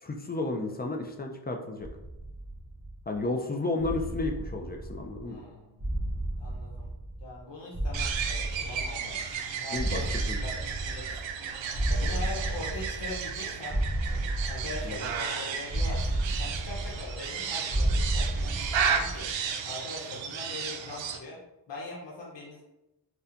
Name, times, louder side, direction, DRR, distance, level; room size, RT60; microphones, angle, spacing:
voice 1, 0.0-1.9 3.1-5.4 9.7-10.0 10.3-10.4 14.8-15.1, left 2 dB, 20° left, 3 dB, 0.4 m, -32 dB
sound 1, 1.8-3.1 3.8-5.3 5.8-7.4 7.7-9.3 9.7-11.4 11.7-13.4 13.7-15.3 15.7-17.4 17.7-19.3, right 1 dB, 20° right, 1.3 m, -32 dB
voice 2, 5.3-5.9 6.4-6.9 7.2-11.2 11.9-18.5 18.8-19.3 19.6-21.4 21.7-22.6, left 2 dB, 60° left, -3 dB, 0.9 m, -42 dB
sound 2, 7.9-21.2, right 6 dB, 70° right, 0.5 m, -34 dB
4.1 x 2.2 x 2.6 m, 0.94 s
cardioid pair, 65°, 48 cm